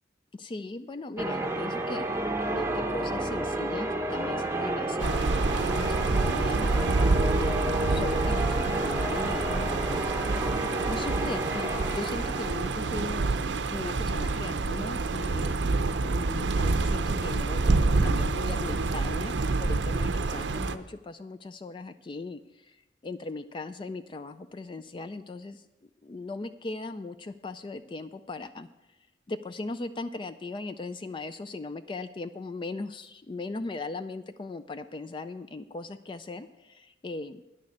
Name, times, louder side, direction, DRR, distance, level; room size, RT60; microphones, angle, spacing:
voice 1, 0.3-2.1 2.5-9.5 10.9-13.4 13.7-25.6 26.0-28.7 29.3-37.4, left 3 dB, 25° left, 11 dB, 0.3 m, -38 dB
Church bell, 1.2-13.4, right 1 dB, 15° right, 0.8 m, -31 dB
sound 1, 5.0-20.8, right 3 dB, 70° right, 0.6 m, -27 dB
10.5 x 6.6 x 8.5 m, 0.97 s
head